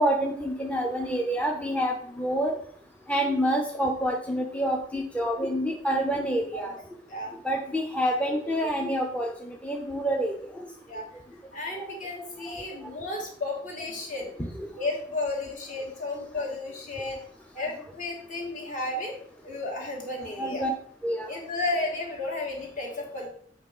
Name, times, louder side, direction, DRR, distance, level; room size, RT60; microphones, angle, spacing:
voice 1, 0.0-2.5 3.1-6.7 7.4-10.3 12.5-12.6 14.6-14.7 20.4-20.7 21.0-21.3, equal, 10° left, 1 dB, 0.6 m, -27 dB
voice 2, 6.5-6.8 7.1-7.3 10.9-11.1 11.5-14.3 14.8-17.2 17.5-19.1 19.4-20.6 21.3-23.3, left 2 dB, 50° left, -1 dB, 2.4 m, -33 dB
7.9 x 3.9 x 5.4 m, 0.62 s
head